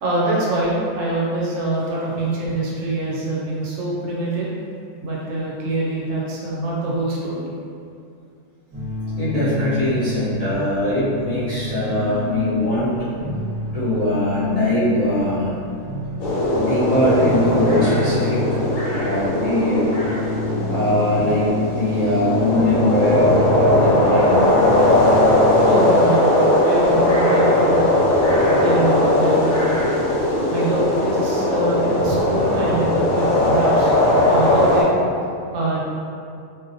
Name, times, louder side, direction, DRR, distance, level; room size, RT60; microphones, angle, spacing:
voice 1, 0.0-4.5 5.0-7.5 25.6-26.4 26.6-27.9 28.6-29.7 30.5-33.9 34.2-34.9 35.5-35.8, right 2 dB, 75° right, -5 dB, 0.9 m, -24 dB
sound 1, 8.7-26.0, left 2 dB, 35° right, 1.0 m, -28 dB
voice 2, 9.2-13.1 13.7-15.5 16.6-18.6 18.9-19.9 20.7-24.4, left 1 dB, 45° left, -15 dB, 0.5 m, -21 dB
sound 2, 16.2-34.8, left 1 dB, 90° left, 1.1 m, -18 dB
2.5 x 2.1 x 2.5 m, 2.4 s
omnidirectional pair, 1.4 m